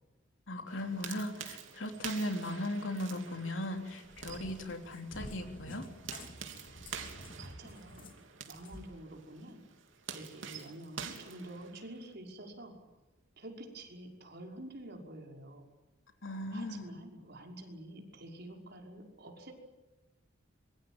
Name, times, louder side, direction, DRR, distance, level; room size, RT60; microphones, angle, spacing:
voice 1, 0.5-5.9 16.2-16.9, left 1 dB, 75° left, 4 dB, 3.6 m, -37 dB
sound 1, 0.7-12.1, right 7 dB, 75° right, 3.2 m, -47 dB
Cat, 3.7-8.9, left 1 dB, 45° left, 3.0 m, -49 dB
voice 2, 7.4-8.0 8.5-9.6 10.1-12.9 13.4-15.7 16.5-19.5, right 1 dB, 55° right, 1 dB, 5.6 m, -48 dB
26.0 x 23.5 x 9.0 m, 1.1 s
head